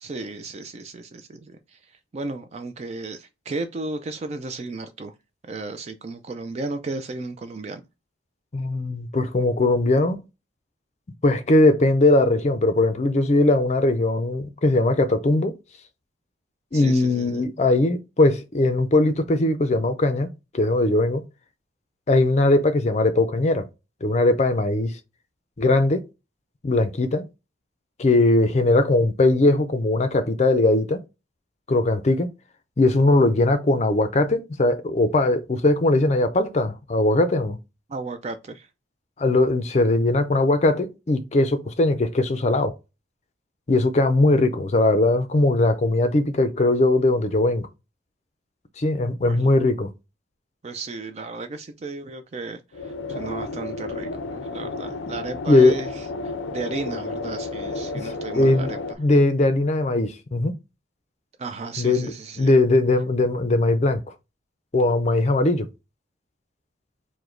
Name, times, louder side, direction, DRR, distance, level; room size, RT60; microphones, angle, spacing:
voice 1, 0.0-1.8 2.1-5.1 5.5-7.8 16.7-17.4 37.9-38.7 49.3-49.5 50.6-55.9 56.5-58.8 61.4-62.5, right 3 dB, 35° right, 0.3 m, -34 dB
voice 2, 8.5-10.2 11.2-15.6 16.7-21.2 22.1-23.7 24.0-25.0 25.6-26.0 26.6-27.3 28.0-31.0 31.7-32.3 32.8-37.6 39.2-42.7 43.7-47.7 48.8-49.9 55.5-55.8 58.0-58.7 59.0-60.6 61.8-64.0 64.7-65.7, left 2 dB, 35° left, 0.5 m, -20 dB
sound 1, 52.7-58.9, left 3 dB, 90° left, 0.5 m, -32 dB
4.8 x 2.1 x 3.7 m
head